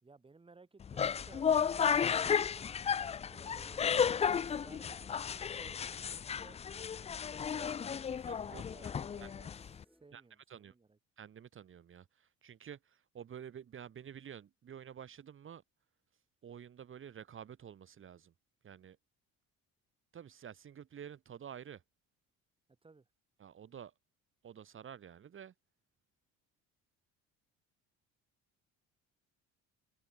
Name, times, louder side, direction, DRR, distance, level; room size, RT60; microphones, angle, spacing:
voice 1, 0.0-6.6 7.5-11.0 22.8-23.1, right 3 dB, 15° right, 3.4 m, -60 dB
sound 1, 0.8-9.8, left 7 dB, 20° left, 0.4 m, -33 dB
sound 2, 3.0-10.1, equal, ahead, 7.8 m, -64 dB
voice 2, 8.3-8.9 9.2-9.3 10.1-10.2 10.5-10.7 11.2-15.6 16.4-18.3 18.6-19.0 20.1-21.8 23.4-23.9 24.4-25.5, right 8 dB, 40° right, 2.4 m, -50 dB
cardioid pair, 115°, 31 cm